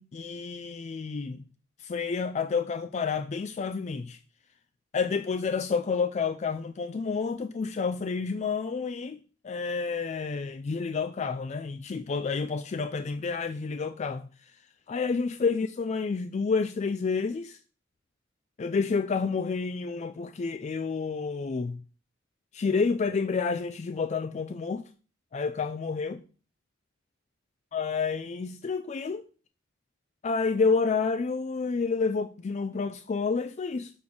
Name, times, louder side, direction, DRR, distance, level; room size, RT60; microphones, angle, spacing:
voice 1, 0.0-1.4 1.8-4.2 4.9-14.5 14.9-17.6 18.6-21.8 22.5-24.8 25.3-26.2 27.7-29.2 30.2-33.9, left 4 dB, 35° left, 0.3 m, -29 dB
7.1 x 3.6 x 6.2 m
head